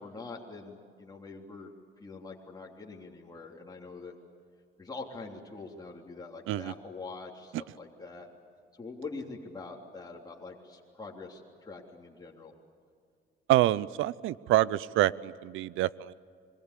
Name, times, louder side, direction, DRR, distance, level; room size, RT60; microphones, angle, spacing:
voice 1, 0.0-1.7 2.0-4.2 4.8-8.3 8.8-12.5, left 3 dB, 20° left, -2 dB, 3.4 m, -44 dB
voice 2, 13.5-16.1, right 15 dB, 90° right, 20 dB, 0.7 m, -26 dB
26.5 x 23.0 x 8.3 m, 2.3 s
cardioid pair, 90°, 20 cm